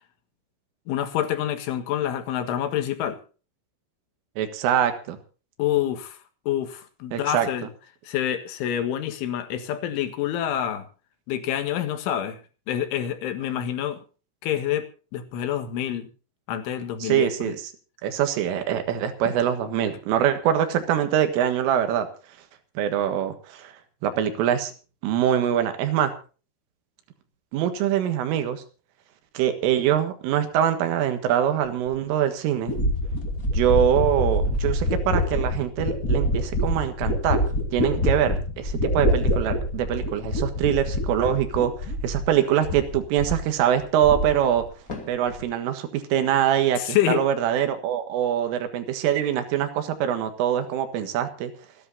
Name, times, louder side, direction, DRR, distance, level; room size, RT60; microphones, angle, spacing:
voice 1, 0.9-3.2 5.6-6.2 6.5-7.7 8.1-10.9 11.3-12.4 12.7-14.0 14.4-14.9 15.1-16.1 16.5-17.5 46.8-47.2, left 11 dB, 80° left, 8 dB, 4.1 m, -27 dB
voice 2, 4.4-5.2 7.1-7.5 17.0-17.6 18.0-22.1 22.8-23.7 24.0-24.7 25.0-26.1 27.5-28.6 29.4-32.7 33.5-37.4 37.7-44.6 45.1-51.5, right 10 dB, 85° right, 8 dB, 4.3 m, -24 dB
sound 1, 31.9-32.0 32.7-42.4 42.6-43.5 43.8-44.6 44.9-45.4, left 1 dB, 25° left, 2.3 m, -26 dB
28.0 x 11.0 x 2.8 m, 0.36 s
omnidirectional pair, 5.6 m